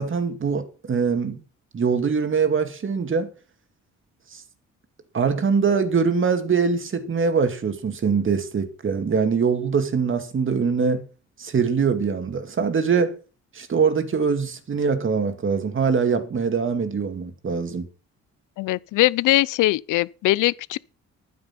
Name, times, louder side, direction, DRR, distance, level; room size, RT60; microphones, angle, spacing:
voice 1, 0.0-1.4 1.7-3.3 4.3-4.4 5.1-11.0 11.4-13.1 13.5-17.9, right 5 dB, 40° right, 2.3 m, -23 dB
voice 2, 18.6-20.8, left 17 dB, 85° left, 0.6 m, -21 dB
11.5 x 9.7 x 5.9 m
cardioid pair, 90°, 30 cm